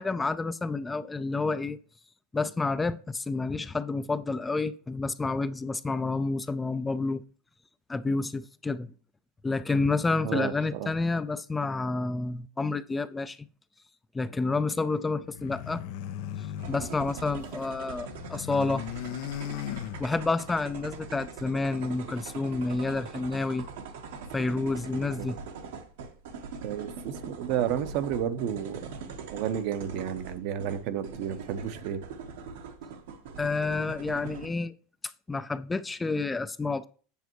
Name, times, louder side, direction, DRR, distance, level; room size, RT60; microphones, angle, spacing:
voice 1, 0.0-1.8 2.3-7.2 7.9-8.9 9.4-13.4 14.1-15.8 16.7-18.9 20.0-23.7 24.3-25.4 33.4-34.7 35.3-36.9, left 3 dB, 15° left, 0.5 m, -29 dB
voice 2, 10.2-10.9 24.9-25.3 26.6-28.8 29.3-32.0, right 9 dB, 60° right, 0.9 m, -31 dB
sound 1, 15.2-17.7 18.0-20.5, left 11 dB, 65° left, 0.6 m, -38 dB
sound 2, 16.6-34.5, right 5 dB, 80° right, 1.3 m, -42 dB
8.4 x 6.8 x 3.1 m
supercardioid pair, 110°, 0 cm